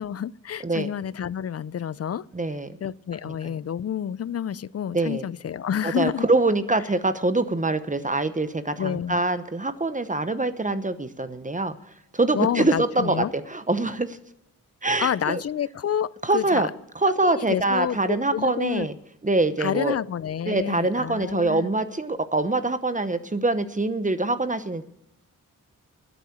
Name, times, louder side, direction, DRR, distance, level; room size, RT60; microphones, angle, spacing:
voice 1, 0.0-2.3 2.8-6.3 8.8-9.2 12.3-13.3 15.0-16.6 17.1-18.9 19.6-21.7, left 9 dB, 45° left, 0.4 m, -29 dB
voice 2, 2.3-2.8 3.4-3.5 4.9-5.3 5.8-11.8 12.1-14.2 14.8-15.4 16.2-16.7 16.9-18.9 19.2-19.9 20.4-24.8, right 2 dB, 25° right, 0.9 m, -24 dB
12.5 x 8.4 x 8.3 m
cardioid pair, 75°, 34 cm